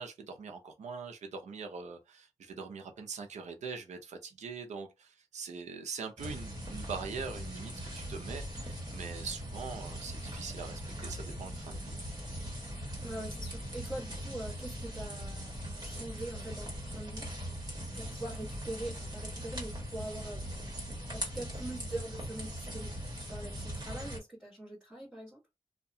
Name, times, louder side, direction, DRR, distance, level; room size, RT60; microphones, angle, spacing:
voice 1, 0.0-12.0, right 5 dB, 85° right, 0.6 m, -42 dB
sound 1, 6.2-24.2, equal, 35° right, 1.4 m, -40 dB
voice 2, 13.0-15.5 15.8-17.3 17.9-20.4 21.1-23.0 23.3-25.4, right 1 dB, 10° right, 1.3 m, -43 dB
2.7 x 2.2 x 2.6 m
cardioid pair, 65°, 12 cm